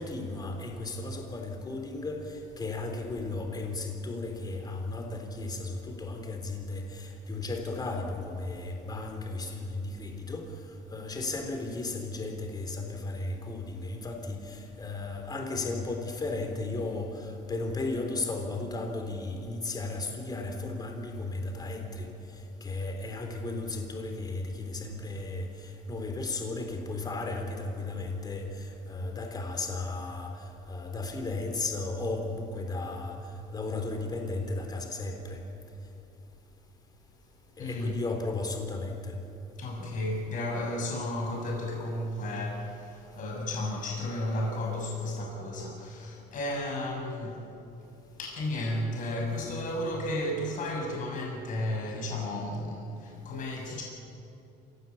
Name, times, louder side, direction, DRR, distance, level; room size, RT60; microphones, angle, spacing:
voice 1, 0.0-35.4 37.6-39.2 49.4-49.5, left 2 dB, 25° left, 3 dB, 3.8 m, -35 dB
voice 2, 37.6-38.0 39.6-47.4 48.2-53.8, left 1 dB, 50° left, -1 dB, 7.2 m, -33 dB
27.5 x 17.0 x 8.4 m, 2.8 s
cardioid pair, 125°, 17 cm